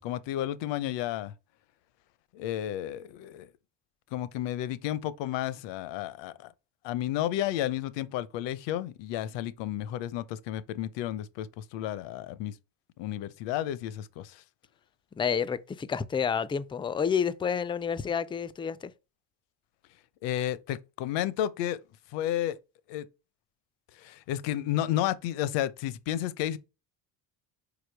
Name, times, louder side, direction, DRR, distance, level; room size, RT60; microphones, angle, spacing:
voice 1, 0.0-1.3 2.3-3.5 4.1-6.5 6.8-12.5 13.0-14.4 20.2-21.8 22.1-22.6 22.9-23.1 24.0-26.6, left 12 dB, 80° left, 0.8 m, -32 dB
voice 2, 15.2-18.9, left 7 dB, 15° left, 0.3 m, -29 dB
5.1 x 4.7 x 4.6 m
cardioid pair, 105°, 43 cm